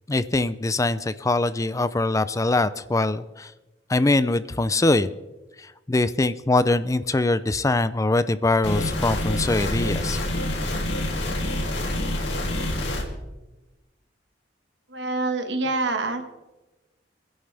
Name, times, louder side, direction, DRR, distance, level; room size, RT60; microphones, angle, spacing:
voice 1, 0.1-3.5 3.9-5.1 5.9-10.2, left 2 dB, 20° left, 14 dB, 0.4 m, -22 dB
sound 1, 8.6-13.0, left 1 dB, 90° left, 2.9 m, -27 dB
voice 2, 14.9-16.2, right 3 dB, 85° right, 6 dB, 1.6 m, -26 dB
24.0 x 11.0 x 3.4 m, 1.1 s
head